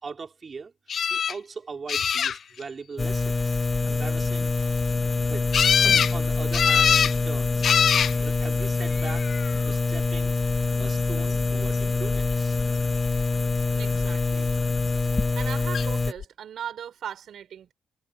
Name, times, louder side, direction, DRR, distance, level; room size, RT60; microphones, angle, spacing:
voice 1, 0.0-0.7 1.1-3.6 3.9-4.6 5.3-6.9 7.2-7.8 8.2-9.3 9.5-10.4 10.8-12.6, right 5 dB, 30° right, 3.6 m, -40 dB
sound 1, 0.9-1.3 1.9-2.6 5.5-6.1 6.5-7.1 7.6-8.1 9.0-9.5 15.7-15.9 16.2-16.3, left 7 dB, 40° left, 0.5 m, -22 dB
sound 2, 3.0-16.1, left 3 dB, 15° left, 1.9 m, -25 dB
voice 2, 13.7-14.5 14.9-17.7, right 9 dB, 50° right, 6.0 m, -39 dB
cardioid pair, 155°, 0 cm